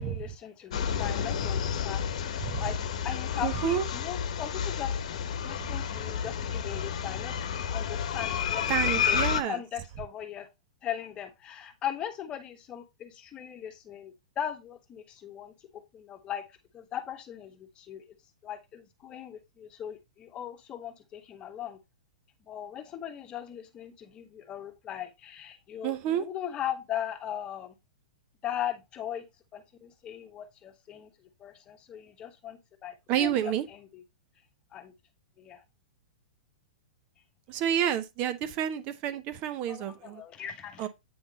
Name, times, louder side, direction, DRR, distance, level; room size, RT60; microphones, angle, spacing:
voice 1, 0.0-5.0 5.4-7.4 7.7-10.5 10.8-15.5 15.9-16.4 16.7-18.0 18.4-21.8 22.5-27.7 28.4-29.2 29.5-31.1 31.4-33.4 33.9-34.0 34.7-34.9 35.4-35.6 39.7-40.9, left 10 dB, 25° left, 1.2 m, -39 dB
sound 1, 0.7-9.4, left 7 dB, 65° left, 1.0 m, -30 dB
voice 2, 3.4-3.9 8.7-9.6 25.8-26.3 33.1-33.7 37.5-40.2 40.8-40.9, right 10 dB, 40° right, 0.8 m, -29 dB
8.7 x 3.6 x 4.0 m
hypercardioid pair, 125°, 4 cm